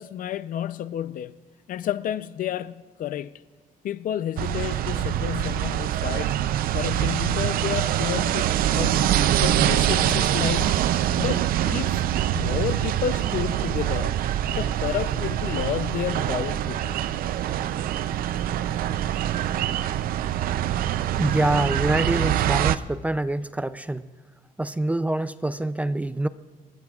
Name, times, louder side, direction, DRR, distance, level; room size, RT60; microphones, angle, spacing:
voice 1, 0.0-1.4 1.7-3.3 3.8-6.3 6.7-8.5 8.7-10.9 11.2-12.0 12.3-14.2 14.4-17.0 18.4-18.5, left 10 dB, 60° left, 0.6 m, -31 dB
sound 1, 4.4-22.8, right 12 dB, 70° right, 0.5 m, -24 dB
voice 2, 21.2-24.1 24.6-26.3, right 1 dB, 10° right, 0.4 m, -25 dB
27.5 x 21.0 x 2.4 m
cardioid pair, 135°, 16 cm